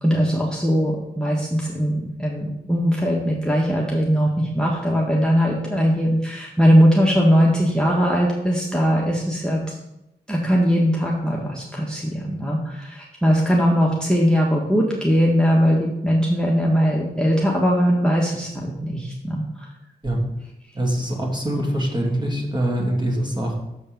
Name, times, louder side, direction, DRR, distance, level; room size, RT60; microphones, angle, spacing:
voice 1, 0.0-9.6 10.3-19.7, equal, 5° left, -3 dB, 1.5 m, -20 dB
voice 2, 20.7-23.5, right 1 dB, 25° right, -1 dB, 2.4 m, -23 dB
7.0 x 5.3 x 5.3 m, 0.87 s
cardioid pair, 45°, 19 cm